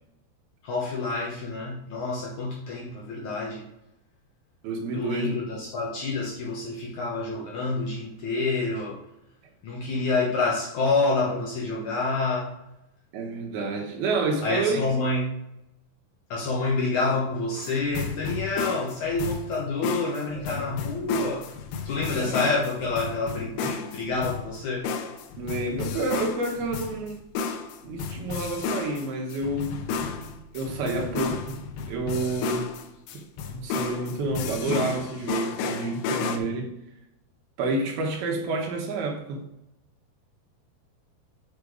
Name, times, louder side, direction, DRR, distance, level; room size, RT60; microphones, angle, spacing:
voice 1, 0.6-3.6 4.9-9.0 9.6-12.5 14.4-15.4 16.3-21.6 21.8-24.9, left 3 dB, 65° left, -3 dB, 2.1 m, -28 dB
voice 2, 4.6-5.4 13.1-14.8 20.3-20.8 22.1-22.4 23.6-23.8 25.4-27.2 27.8-29.8 30.5-31.6 31.9-32.7 33.4-36.7 37.6-39.4, right 3 dB, 70° right, 1 dB, 3.0 m, -29 dB
sound 1, 17.6-36.4, left 5 dB, 85° left, 2.8 m, -33 dB
6.7 x 6.0 x 4.9 m, 0.85 s
omnidirectional pair, 4.7 m